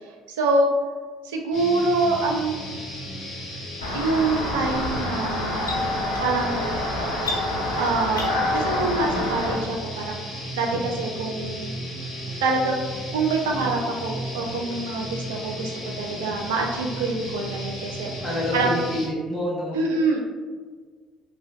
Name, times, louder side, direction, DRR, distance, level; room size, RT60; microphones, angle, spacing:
voice 1, 0.3-0.7 1.2-2.6 3.9-5.8 6.2-6.7 7.8-10.1 10.5-11.7 12.4-12.8 13.1-18.8 19.7-20.2, right 3 dB, 80° right, 1 dB, 0.4 m, -25 dB
sound 1, 1.5-19.1, equal, 55° left, 0.9 m, -35 dB
sound 2, 3.8-9.5, left 1 dB, 90° left, 0.4 m, -27 dB
voice 2, 18.2-19.8, left 1 dB, 25° left, -7 dB, 1.3 m, -27 dB
2.9 x 2.4 x 2.3 m, 1.5 s
hypercardioid pair, 55°, 0 cm